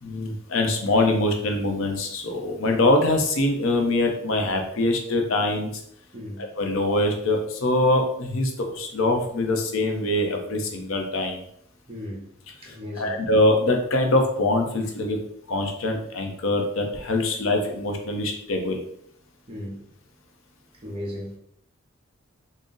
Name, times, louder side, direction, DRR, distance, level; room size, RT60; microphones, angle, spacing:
voice 1, 0.0-5.8 6.4-11.4 12.6-15.2 15.5-18.8, left 2 dB, 65° left, 0.6 m, -23 dB
voice 2, 6.1-6.5 11.9-12.3 12.6-13.2 19.5-19.8 20.8-21.4, left 1 dB, 25° right, 0.9 m, -35 dB
3.7 x 2.0 x 3.7 m
head